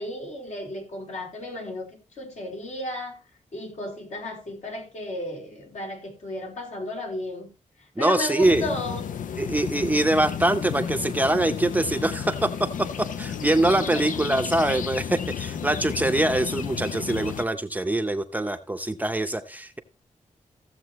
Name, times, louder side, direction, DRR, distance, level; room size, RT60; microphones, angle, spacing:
voice 1, 0.0-3.2 3.5-7.5 8.0-9.3 13.7-14.0, left 1 dB, 65° left, 1 dB, 3.5 m, -34 dB
voice 2, 8.0-8.7 9.4-12.7 13.0-19.8, right 1 dB, 10° right, 6 dB, 0.7 m, -24 dB
sound 1, 8.4-17.4, left 8 dB, 80° left, 0.6 m, -32 dB
15.5 x 7.4 x 3.0 m, 0.29 s
wide cardioid pair, 115°, 13 cm